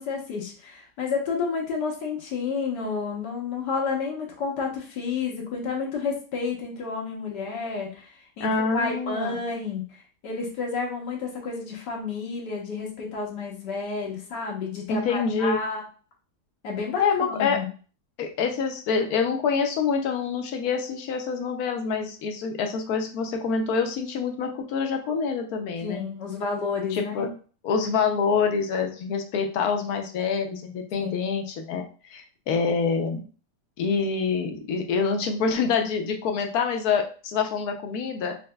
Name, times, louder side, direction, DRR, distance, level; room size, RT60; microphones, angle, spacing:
voice 1, 0.0-15.8 16.6-17.0 17.3-17.7 25.8-27.3 31.0-31.2, left 5 dB, 85° left, -1 dB, 1.6 m, -30 dB
voice 2, 8.4-9.4 14.9-15.6 17.0-17.6 18.2-26.0 26.9-27.3 27.6-33.2 33.8-38.4, left 5 dB, 70° left, 4 dB, 1.1 m, -26 dB
5.3 x 2.8 x 2.2 m, 0.38 s
omnidirectional pair, 1.8 m